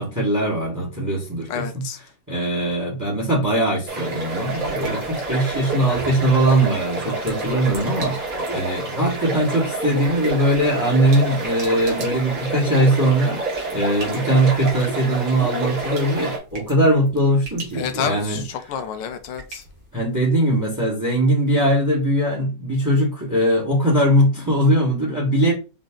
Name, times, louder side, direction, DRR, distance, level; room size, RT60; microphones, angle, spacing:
voice 1, 0.0-1.8 2.3-18.4 19.9-25.5, right 1 dB, 10° right, 1.4 m, -20 dB
voice 2, 1.5-2.0 5.8-5.9 17.7-19.6, left 8 dB, 85° left, 1.3 m, -29 dB
sound 1, 3.9-16.4, right 2 dB, 50° right, 2.2 m, -28 dB
sound 2, 4.2-20.3, right 2 dB, 65° right, 2.1 m, -43 dB
5.2 x 2.6 x 3.7 m
omnidirectional pair, 1.9 m